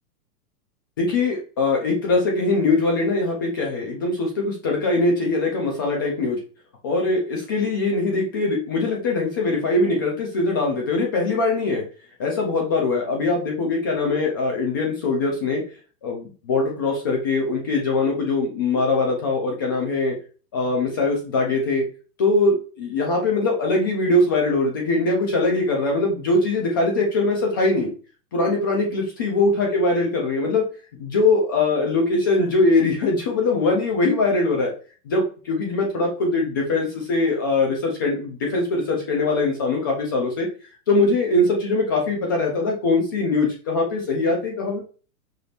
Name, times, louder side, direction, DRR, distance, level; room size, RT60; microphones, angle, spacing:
voice 1, 1.0-6.4 6.8-11.8 12.2-15.6 16.0-20.2 20.5-21.8 22.2-27.9 28.3-30.6 31.0-34.7 35.1-40.5 40.9-44.8, left 3 dB, 15° left, 1 dB, 0.3 m, -22 dB
5.6 x 3.5 x 2.4 m, 0.36 s
hypercardioid pair, 140°, 49 cm